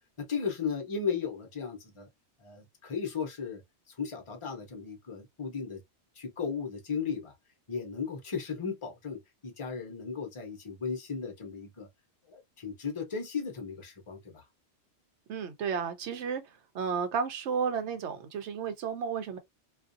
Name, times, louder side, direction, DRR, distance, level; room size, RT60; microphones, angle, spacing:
voice 1, 0.2-2.1 2.4-3.6 3.9-5.8 6.2-7.3 7.7-11.9 12.3-14.4, left 6 dB, 30° left, 0.8 m, -36 dB
voice 2, 15.3-16.4 16.7-19.4, right 6 dB, 80° right, 0.9 m, -32 dB
2.4 x 2.4 x 2.5 m
omnidirectional pair, 1.2 m